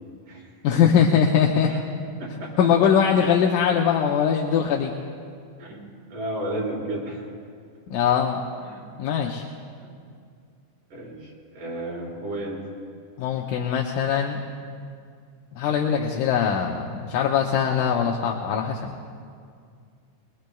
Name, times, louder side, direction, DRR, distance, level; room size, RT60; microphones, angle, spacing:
voice 1, 0.6-1.7 2.6-4.9 7.9-8.4 9.0-9.4 13.2-14.4 15.5-18.9, left 7 dB, 80° left, 0 dB, 2.4 m, -21 dB
voice 2, 2.2-2.5 5.6-5.8 6.1-7.2 8.6-8.8 9.8-10.0 10.9-12.6, right 1 dB, 70° right, -5 dB, 6.1 m, -33 dB
23.0 x 21.0 x 2.3 m, 2.3 s
omnidirectional pair, 3.8 m